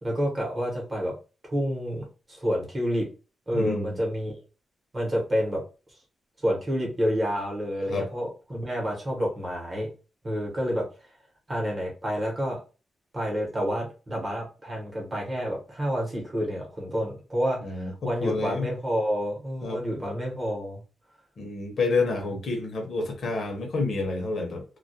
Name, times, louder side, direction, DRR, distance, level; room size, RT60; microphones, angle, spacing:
voice 1, 0.0-1.1 1.4-3.1 3.5-4.3 4.9-5.6 6.4-9.9 10.2-10.8 11.5-12.6 13.1-20.8, equal, 25° right, 0.9 m, -29 dB
voice 2, 3.5-4.0 7.9-8.1 17.6-18.7 19.6-19.8 21.4-24.6, left 3 dB, 55° left, 0.6 m, -29 dB
2.2 x 2.1 x 2.6 m
wide cardioid pair, 160°, 0 cm